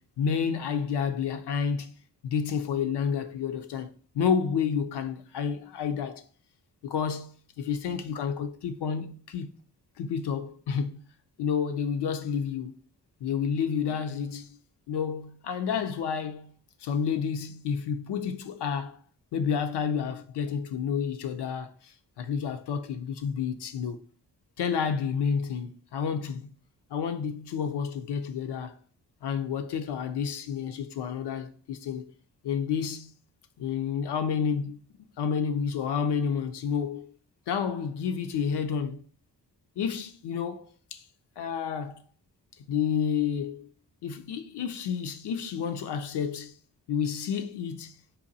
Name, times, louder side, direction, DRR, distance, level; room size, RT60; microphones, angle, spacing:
voice 1, 0.2-1.9 2.2-3.9 4.1-6.2 6.8-9.5 10.0-11.0 11.4-12.7 13.2-14.6 14.9-16.5 16.8-19.0 19.3-24.0 24.6-26.5 26.9-28.7 29.2-32.0 32.4-33.1 33.6-37.1 37.5-39.0 39.8-41.0 41.4-42.0 42.7-43.7 44.0-46.5 46.9-48.0, left 7 dB, 70° left, 0.5 m, -30 dB
3.9 x 2.2 x 2.6 m
supercardioid pair, 45°, 43 cm